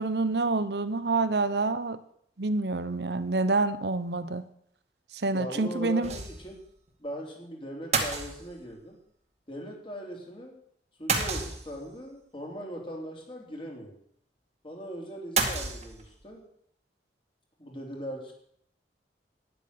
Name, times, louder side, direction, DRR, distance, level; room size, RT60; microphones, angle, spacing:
voice 1, 0.0-2.0 2.4-4.5 5.1-6.1, right 3 dB, 65° right, 13 dB, 0.9 m, -27 dB
voice 2, 5.3-6.6 7.0-9.0 9.5-10.5 11.0-13.9 14.6-16.4 17.6-18.3, equal, 30° left, 0 dB, 3.6 m, -39 dB
sound 1, 6.0-6.6 6.9-7.0 7.9-8.8 11.1-12.0 15.4-16.3, right 4 dB, 40° right, 2.0 m, -30 dB
12.0 x 10.0 x 6.9 m, 0.68 s
head